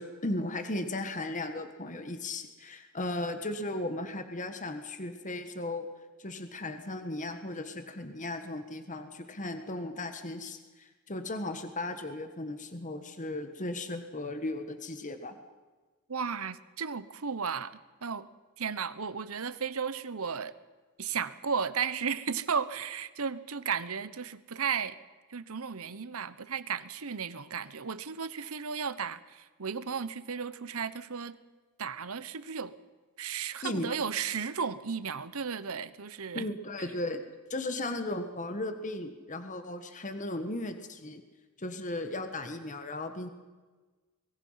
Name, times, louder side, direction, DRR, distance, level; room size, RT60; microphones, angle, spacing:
voice 1, 0.0-5.9 6.2-15.4 33.6-34.0 36.3-37.2 37.5-41.2 41.6-43.3, left 2 dB, 35° left, 7 dB, 1.5 m, -36 dB
voice 2, 16.1-18.3 18.6-20.6 21.0-25.0 25.3-31.4 31.8-32.7 33.2-36.5, right 6 dB, 70° right, 15 dB, 1.0 m, -34 dB
25.0 x 22.0 x 5.8 m, 1.3 s
head